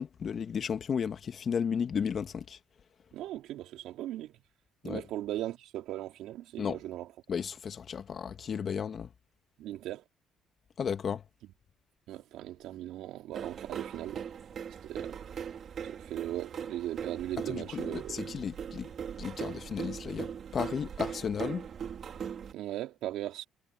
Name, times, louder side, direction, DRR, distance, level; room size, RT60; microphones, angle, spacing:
voice 1, 0.0-2.6 4.8-5.0 6.6-6.8 7.3-9.1 10.8-11.2 17.5-18.9 19.2-21.7, left 7 dB, 45° left, 1.8 m, -34 dB
voice 2, 3.1-4.4 4.8-7.1 9.6-10.0 12.1-14.3 14.8-15.3 15.8-18.2 22.5-23.4, right 14 dB, 75° right, 4.1 m, -38 dB
sound 1, 13.3-22.5, right 7 dB, 50° right, 3.6 m, -40 dB
supercardioid pair, 80°, 0 cm